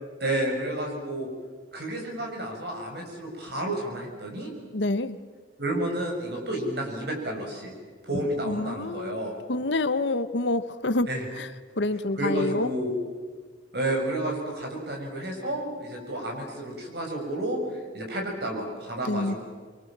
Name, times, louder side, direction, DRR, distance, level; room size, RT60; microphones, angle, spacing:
voice 1, 0.2-1.3 1.7-4.5 5.6-7.7 8.0-9.3 11.1-11.2 12.2-12.9 13.7-19.4, right 1 dB, 60° right, 1 dB, 6.6 m, -31 dB
voice 2, 4.7-5.2 8.4-11.1 11.4-11.5 11.8-12.7 19.0-19.4, left 2 dB, 70° left, 13 dB, 1.0 m, -27 dB
25.5 x 23.5 x 7.5 m, 1.5 s
head